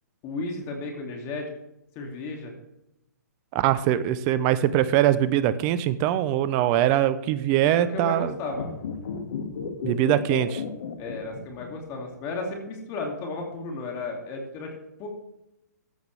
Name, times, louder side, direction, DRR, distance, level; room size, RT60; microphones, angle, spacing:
voice 1, 0.2-1.5 1.9-2.5 7.6-8.7 11.0-14.7 15.0-15.1, left 3 dB, 30° left, 1 dB, 2.5 m, -34 dB
voice 2, 3.5-8.3 9.8-10.6, right 12 dB, 30° right, 15 dB, 0.7 m, -22 dB
sound 1, 8.5-11.9 12.1-12.2, left 6 dB, 60° left, 2.0 m, -34 dB
14.5 x 8.1 x 3.4 m, 0.88 s
hypercardioid pair, 125°, 10 cm